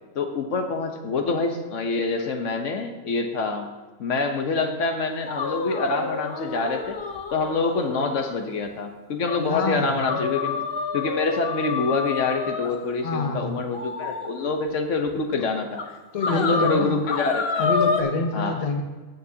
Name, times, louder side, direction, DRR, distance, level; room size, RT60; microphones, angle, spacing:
voice 1, 0.1-3.7 4.0-7.0 7.3-10.6 10.9-15.8 16.3-17.7 18.3-18.6, left 3 dB, 80° left, 5 dB, 1.2 m, -26 dB
sound 1, 5.3-8.3 8.6-8.7 9.3-9.4 10.0-12.7 13.7-14.3 15.1-15.2 15.8-15.9 16.2-18.0, left 4 dB, 55° left, 1.1 m, -28 dB
voice 2, 9.5-10.3 13.0-13.6 16.1-17.0 17.6-18.8, left 4 dB, 35° left, 4 dB, 0.9 m, -26 dB
16.0 x 6.8 x 2.8 m, 1.3 s
omnidirectional pair, 1.3 m